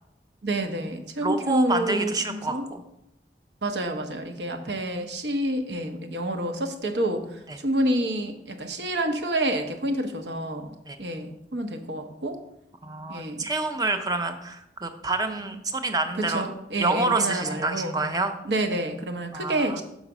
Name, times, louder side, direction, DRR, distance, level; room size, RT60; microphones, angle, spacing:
voice 1, 0.4-2.7 3.6-12.4 13.1-13.5 16.2-18.0 18.4-19.8, right 1 dB, 75° right, 5 dB, 0.9 m, -28 dB
voice 2, 1.2-2.8 7.5-7.6 10.9-11.0 12.8-16.5 16.8-18.3 19.3-19.8, right 3 dB, 20° right, 7 dB, 0.5 m, -28 dB
6.5 x 4.0 x 5.9 m, 0.83 s
head